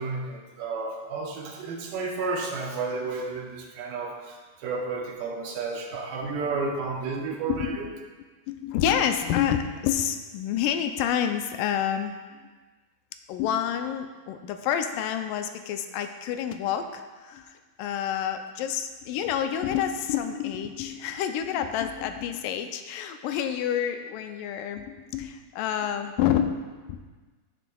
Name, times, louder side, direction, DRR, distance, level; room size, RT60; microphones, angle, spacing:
voice 1, 0.0-7.9, right 4 dB, 90° right, 0 dB, 2.8 m, -32 dB
voice 2, 6.2-6.6 7.5-7.9 8.5-12.1 13.3-27.0, left 9 dB, 80° left, 7 dB, 2.0 m, -28 dB
14.5 x 6.9 x 2.3 m, 1.3 s
omnidirectional pair, 4.0 m